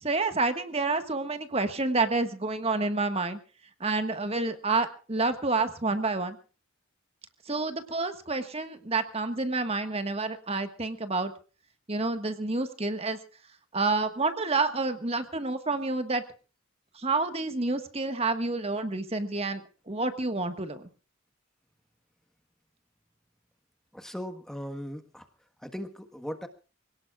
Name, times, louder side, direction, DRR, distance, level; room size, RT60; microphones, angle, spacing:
voice 1, 0.0-3.4 3.8-6.4 7.5-11.3 11.9-13.2 13.7-16.2 16.9-19.6 19.9-20.9, right 3 dB, 30° right, 8 dB, 1.5 m, -29 dB
voice 2, 23.9-25.2 25.6-26.5, equal, ahead, 7 dB, 1.4 m, -38 dB
26.0 x 18.0 x 2.4 m, 0.36 s
head